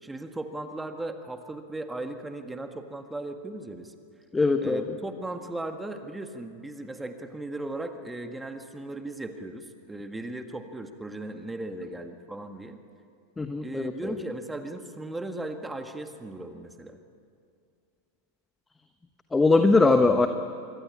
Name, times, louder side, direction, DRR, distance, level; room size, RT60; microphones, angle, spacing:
voice 1, 0.0-3.9 4.6-12.8 13.6-17.0, right 2 dB, 5° right, 7 dB, 1.8 m, -37 dB
voice 2, 4.3-4.8 13.4-14.1 19.3-20.3, left 3 dB, 10° left, 8 dB, 1.1 m, -21 dB
25.5 x 24.0 x 8.8 m, 2.4 s
figure-of-eight pair, 90°, 0 cm